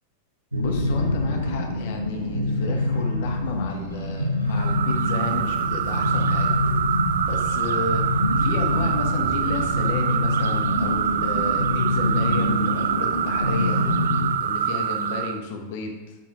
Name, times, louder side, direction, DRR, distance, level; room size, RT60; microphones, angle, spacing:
sound 1, 0.5-14.3, left 1 dB, 85° right, 1.1 m, -25 dB
voice 1, 0.6-6.5 7.2-13.8 14.4-16.1, left 4 dB, 50° left, 3 dB, 1.1 m, -32 dB
sound 2, 4.5-15.4, right 9 dB, 60° right, 0.3 m, -26 dB
7.3 x 5.5 x 4.9 m, 1.2 s
figure-of-eight pair, 90°, 0 cm